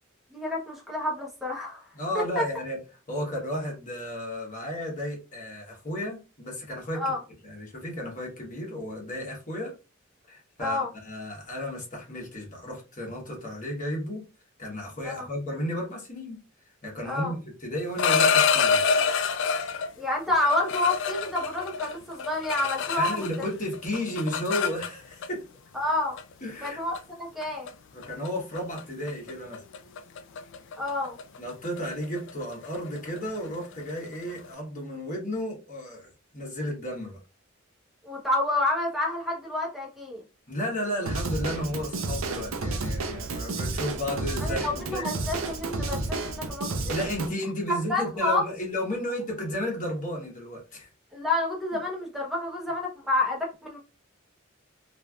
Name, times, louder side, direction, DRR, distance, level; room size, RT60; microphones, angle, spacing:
voice 1, 0.3-1.8 2.1-2.4 7.0-7.2 10.6-10.9 15.0-15.3 17.0-17.3 20.0-23.3 25.7-26.2 26.6-27.7 30.8-31.2 38.0-40.2 44.4-46.9 47.7-48.4 51.1-53.8, left 2 dB, ahead, 0.9 m, -29 dB
voice 2, 1.9-2.8 3.1-7.0 7.4-9.7 10.3-14.2 14.6-16.4 16.8-18.8 23.0-25.4 26.4-26.8 27.9-29.6 31.4-37.2 40.5-45.1 46.9-50.9, equal, 40° left, 1.2 m, -33 dB
sound 1, 17.8-19.9 20.4-23.5 23.7-25.3 26.2-26.3 26.7-27.0 27.4-27.7 28.0-28.3 28.6-28.8 29.1-34.5, left 6 dB, 60° left, 0.3 m, -27 dB
Drum kit / Drum, 41.1-47.3, right 3 dB, 70° right, 0.5 m, -31 dB
3.2 x 2.5 x 2.3 m
head